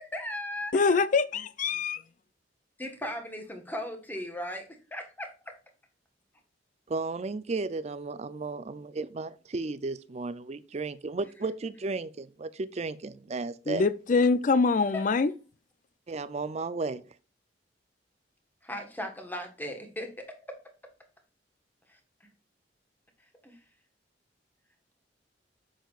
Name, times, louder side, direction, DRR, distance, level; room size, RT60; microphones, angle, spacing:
voice 1, 0.1-1.0 2.8-5.5 14.9-15.0 18.6-20.6 23.4-23.6, left 1 dB, 10° left, 1.4 m, -37 dB
voice 2, 0.7-2.0 13.7-15.3, left 4 dB, 45° left, 0.4 m, -24 dB
voice 3, 6.9-13.9 16.1-17.0, right 3 dB, 35° right, 0.5 m, -34 dB
8.0 x 6.4 x 2.4 m
head